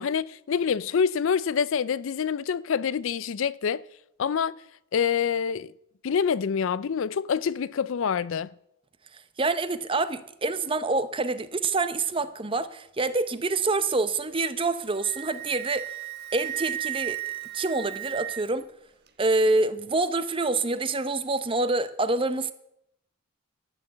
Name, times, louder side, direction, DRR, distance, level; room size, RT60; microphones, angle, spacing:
voice 1, 0.0-3.8 4.2-4.5 4.9-5.7 6.0-8.5, left 7 dB, 60° left, 0.4 m, -26 dB
voice 2, 9.1-15.8 16.3-17.2 17.5-18.7 19.2-22.5, right 3 dB, 25° right, 0.7 m, -26 dB
Wind instrument woodwind instrument, 14.7-18.6, right 15 dB, 45° right, 1.2 m, -35 dB
12.5 x 9.1 x 7.9 m
head